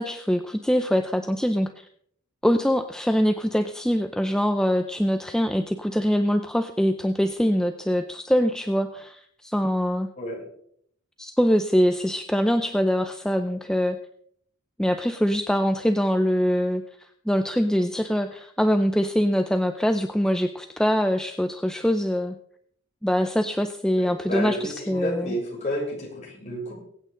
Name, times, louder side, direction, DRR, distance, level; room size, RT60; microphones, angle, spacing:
voice 1, 0.0-1.9 2.4-10.1 11.2-14.0 14.8-16.8 17.3-22.3 23.0-25.3, equal, 5° left, 6 dB, 0.5 m, -23 dB
voice 2, 10.2-10.5 24.0-26.7, equal, 35° left, -4 dB, 7.1 m, -31 dB
22.5 x 8.9 x 3.9 m, 0.66 s
head